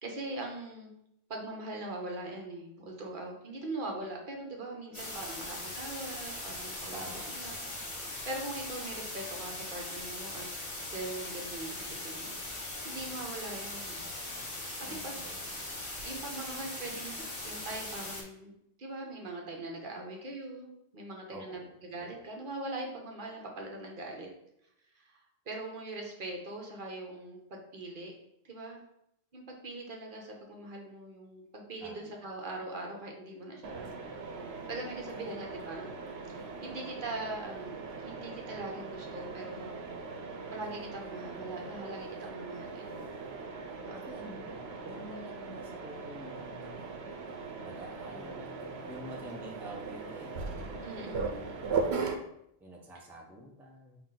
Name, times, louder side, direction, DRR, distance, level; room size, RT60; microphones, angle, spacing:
voice 1, 0.0-1.0 1.3-10.5 10.9-14.1 14.4-15.2 16.0-24.3 24.9-28.1 28.4-28.8 29.3-34.0 34.4-35.9 36.3-39.8 40.5-43.0 43.8-44.1 48.1-48.4 50.8-51.9, right 2 dB, 55° right, 1 dB, 0.9 m, -42 dB
sound 1, 4.9-18.2, left 1 dB, 30° left, 1.0 m, -40 dB
voice 2, 5.1-5.5 6.9-7.7 14.9-15.4 21.3-21.7 22.0-22.3 31.8-32.3 35.2-35.4 36.6-36.9 43.9-46.8 47.6-51.2 52.6-54.0, right 1 dB, ahead, -1 dB, 0.5 m, -48 dB
Mechanisms, 33.6-52.1, right 4 dB, 85° right, 0.9 m, -39 dB
5.9 x 2.4 x 3.8 m, 0.77 s
omnidirectional pair, 1.0 m